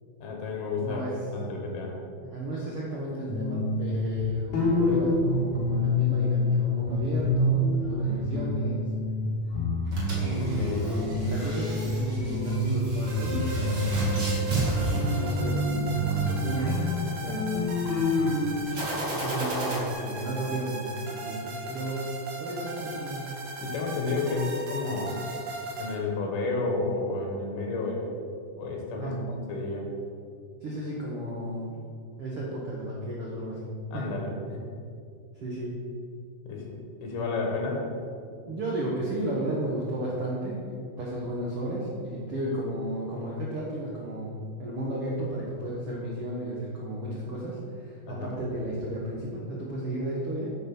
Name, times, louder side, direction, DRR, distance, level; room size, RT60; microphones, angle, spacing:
voice 1, 0.2-1.9 10.4-10.9 18.2-18.5 23.6-25.2 25.8-28.0 28.6-29.8 33.9-34.6 36.5-37.9 48.1-48.3, left 3 dB, 70° left, 0 dB, 3.3 m, -31 dB
voice 2, 0.8-1.3 2.2-9.0 10.3-10.9 11.2-14.5 15.1-17.6 19.1-23.4 29.0-29.3 30.6-31.7 32.2-33.7 33.9-34.2 35.3-35.7 38.4-50.5, right 1 dB, 80° right, -4 dB, 1.3 m, -33 dB
sound 1, 3.3-6.6 6.9-9.3 9.5-11.9 12.2-18.6, left 1 dB, 50° left, 3.0 m, -27 dB
sound 2, 9.9-16.0 18.7-19.8, right 1 dB, 35° right, 1.9 m, -33 dB
sound 3, 13.1-25.9, right 1 dB, 60° right, 2.4 m, -38 dB
10.5 x 6.3 x 6.1 m, 2.3 s
omnidirectional pair, 4.9 m